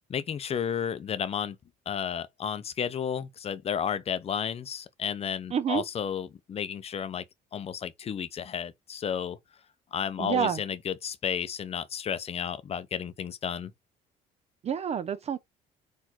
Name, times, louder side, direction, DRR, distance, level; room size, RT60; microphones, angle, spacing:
voice 1, 0.1-1.6 1.9-7.2 7.5-9.4 9.9-13.7, left 8 dB, 35° left, 0.6 m, -32 dB
voice 2, 5.5-5.8 10.2-10.6 14.6-15.4, right 7 dB, 40° right, 0.5 m, -28 dB
4.3 x 2.6 x 4.3 m
cardioid pair, 110°, 17 cm